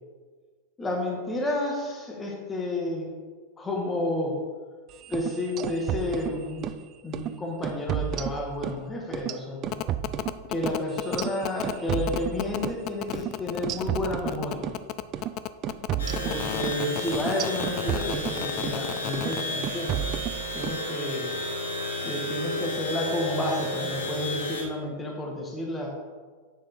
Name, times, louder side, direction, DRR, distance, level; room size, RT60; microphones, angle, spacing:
voice 1, 0.8-3.1 3.6-4.4 5.1-6.7 7.0-9.8 10.5-14.7 16.2-20.0 20.5-21.4 22.0-25.9, left 1 dB, 15° left, 0 dB, 1.9 m, -31 dB
sound 1, 5.0-6.8 7.1-7.3 7.6-8.8 9.1-12.8 13.1-13.3 13.6-14.8 15.1-15.3 15.6-18.8 19.1-19.4 19.6-20.8, right 11 dB, 35° right, 0.4 m, -32 dB
sound 2, 9.7-19.4, left 14 dB, 45° left, 0.4 m, -32 dB
sound 3, 16.0-24.6, left 1 dB, 80° left, 1.7 m, -32 dB
8.7 x 6.2 x 3.8 m, 1.5 s
figure-of-eight pair, 95°, 0 cm